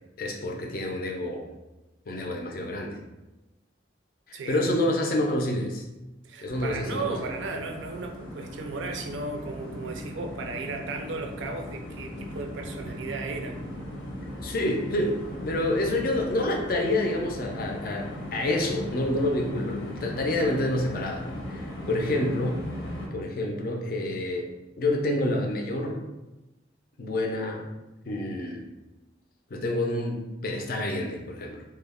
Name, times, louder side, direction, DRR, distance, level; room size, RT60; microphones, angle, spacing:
voice 1, 0.2-1.5 2.1-3.0 4.3-5.8 6.4-7.3 14.4-21.2 21.5-22.6 23.1-24.5 24.8-26.0 27.0-27.6 28.1-28.6 29.5-31.6, left 1 dB, 45° left, 1 dB, 0.4 m, -28 dB
voice 2, 4.3-4.6 6.2-13.6, right 3 dB, 75° right, 4 dB, 0.4 m, -35 dB
sound 1, 6.4-23.1, left 1 dB, 90° left, 0.7 m, -38 dB
2.2 x 2.0 x 3.5 m, 1.0 s
head